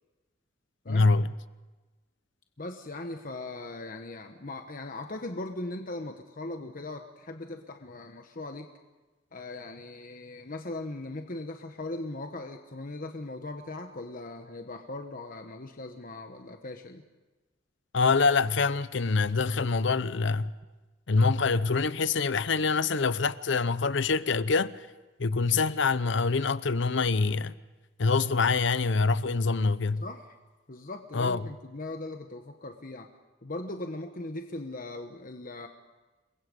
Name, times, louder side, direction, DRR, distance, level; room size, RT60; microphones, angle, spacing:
voice 1, 0.9-1.3 17.9-20.5 21.1-24.9 25.2-27.5 28.0-30.0 31.1-31.4, left 4 dB, 65° left, 0.7 m, -25 dB
voice 2, 2.6-8.7 9.3-17.0 30.0-30.3 30.7-33.1 33.4-35.7, left 2 dB, 45° left, 1.2 m, -39 dB
28.0 x 22.5 x 5.3 m
head